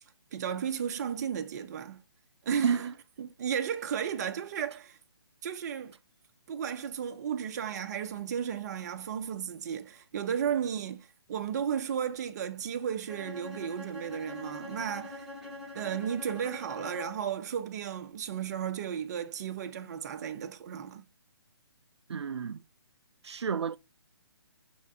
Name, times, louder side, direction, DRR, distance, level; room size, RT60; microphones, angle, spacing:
voice 1, 0.3-2.0 2.4-5.0 5.4-5.9 6.5-15.3 15.7-21.0, right 8 dB, 40° right, 0.8 m, -34 dB
Bowed string instrument, 13.1-17.3, left 2 dB, ahead, 1.4 m, -44 dB
voice 2, 22.1-22.6 23.2-23.8, right 7 dB, 85° right, 0.4 m, -30 dB
6.0 x 3.8 x 4.0 m
hypercardioid pair, 150°, 14 cm